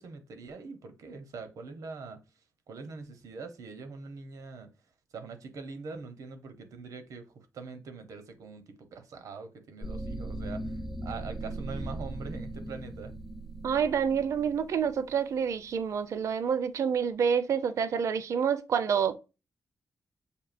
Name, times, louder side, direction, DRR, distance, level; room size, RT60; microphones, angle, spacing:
voice 1, 0.0-2.2 2.7-4.7 5.1-10.7 11.0-13.1, right 4 dB, 85° right, 0.8 m, -43 dB
sound 1, 9.8-15.8, right 2 dB, ahead, 0.5 m, -39 dB
voice 2, 13.6-19.2, right 7 dB, 65° right, 0.4 m, -28 dB
6.7 x 2.7 x 2.5 m
wide cardioid pair, 145°, 6 cm